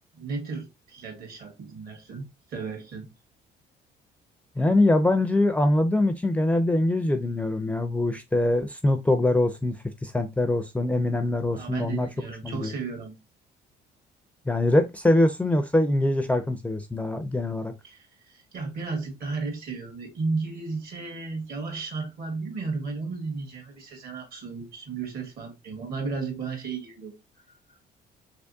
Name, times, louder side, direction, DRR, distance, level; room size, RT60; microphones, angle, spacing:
voice 1, 0.1-3.1 11.5-13.1 17.8-27.1, right 4 dB, 60° right, 1.7 m, -34 dB
voice 2, 4.6-12.1 12.4-12.7 14.5-17.7, left 1 dB, 10° left, 0.4 m, -23 dB
3.4 x 3.1 x 2.6 m
cardioid pair, 110°, 17 cm